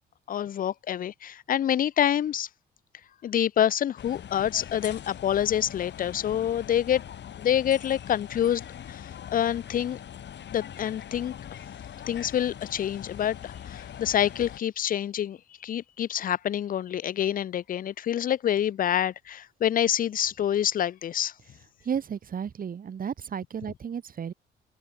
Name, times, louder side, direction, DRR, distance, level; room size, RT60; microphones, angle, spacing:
voice 1, 0.3-2.5 3.2-7.0 7.4-9.0 9.3-10.0 10.5-11.3 12.1-15.4 15.6-21.3, left 10 dB, 45° left, 0.5 m, -27 dB
sound 1, 4.0-14.6, left 9 dB, 60° left, 5.9 m, -42 dB
voice 2, 21.8-24.3, right 7 dB, 45° right, 1.5 m, -33 dB
cardioid pair, 90°, 20 cm